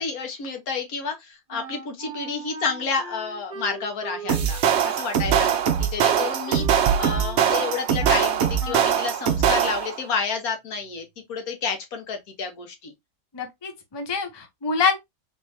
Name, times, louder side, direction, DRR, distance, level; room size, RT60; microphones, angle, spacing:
voice 1, 0.0-12.9, left 5 dB, 85° left, 1.6 m, -30 dB
Wind instrument woodwind instrument, 1.5-8.3 8.6-9.0, right 4 dB, 35° right, 1.8 m, -38 dB
sound 1, 4.3-10.0, right 8 dB, 60° right, 0.8 m, -22 dB
voice 2, 13.3-15.0, left 5 dB, 25° left, 0.6 m, -25 dB
4.1 x 3.2 x 2.7 m
omnidirectional pair, 1.5 m